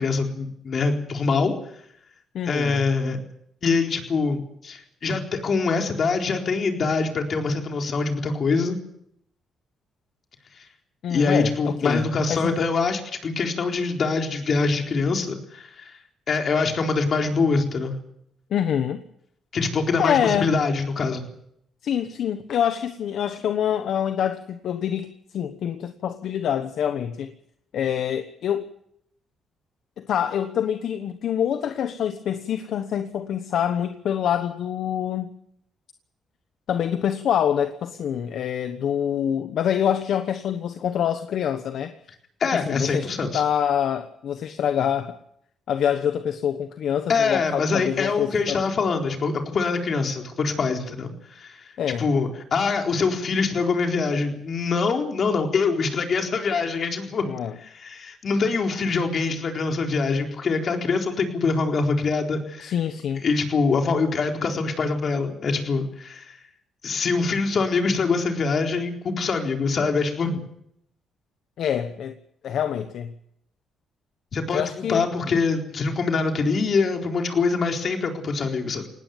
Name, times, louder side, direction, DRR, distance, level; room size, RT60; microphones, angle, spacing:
voice 1, 0.0-1.5 2.5-3.2 3.6-8.8 10.6-10.7 11.1-16.0 16.3-17.9 19.5-21.2 42.4-43.4 47.1-51.7 52.0-57.2 57.6-62.7 63.2-66.4 66.8-70.4 74.3-78.9, left 4 dB, 50° left, 3 dB, 4.1 m, -24 dB
voice 2, 2.3-2.8 11.0-12.5 18.5-19.0 20.0-20.5 21.8-27.3 27.7-28.7 30.0-35.3 36.7-41.9 42.5-43.1 43.3-45.2 45.7-48.6 51.8-52.1 57.2-57.6 62.6-63.2 71.6-72.1 72.4-73.1 74.5-75.4, left 9 dB, 70° left, 9 dB, 1.1 m, -26 dB
19.0 x 17.5 x 9.2 m, 0.72 s
cardioid pair, 90°, 0 cm